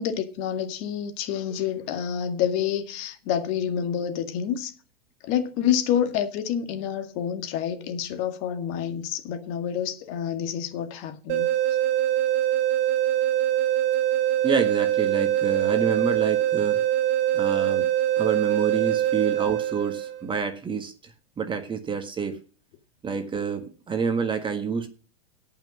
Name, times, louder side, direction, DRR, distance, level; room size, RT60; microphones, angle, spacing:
voice 1, 0.0-4.7 5.2-11.5, left 9 dB, 45° left, 2.0 m, -28 dB
sound 1, 11.3-20.2, right 12 dB, 40° right, 1.7 m, -23 dB
voice 2, 14.4-16.8 17.3-17.9 18.2-22.4 23.0-24.9, right 6 dB, 15° right, 1.5 m, -28 dB
17.0 x 5.9 x 6.2 m
hypercardioid pair, 130°, 30 cm